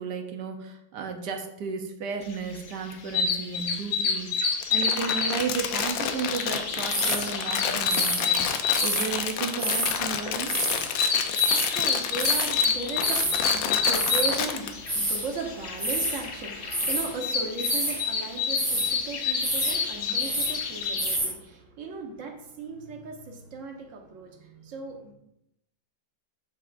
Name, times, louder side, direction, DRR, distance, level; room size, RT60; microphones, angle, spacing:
voice 1, 0.0-10.5, right 5 dB, 65° right, 1.3 m, -34 dB
sound 1, 2.5-21.2, left 5 dB, 55° left, 1.0 m, -29 dB
Crumpling crinkling, 4.6-14.7, left 8 dB, 75° left, 1.3 m, -30 dB
sound 2, 6.9-7.3 7.9-9.1 9.6-10.0 10.4-10.9 11.1-11.7 12.2-12.5 13.0-13.5 13.8-14.4 14.9-15.3 15.8-16.2 16.6-17.1 17.6-18.1 18.5-18.9 19.4-19.8 20.0-20.6 21.0-21.3, right 1 dB, 10° right, 0.4 m, -28 dB
voice 2, 10.9-25.1, right 3 dB, 45° right, 1.3 m, -37 dB
8.3 x 7.4 x 2.5 m
omnidirectional pair, 2.2 m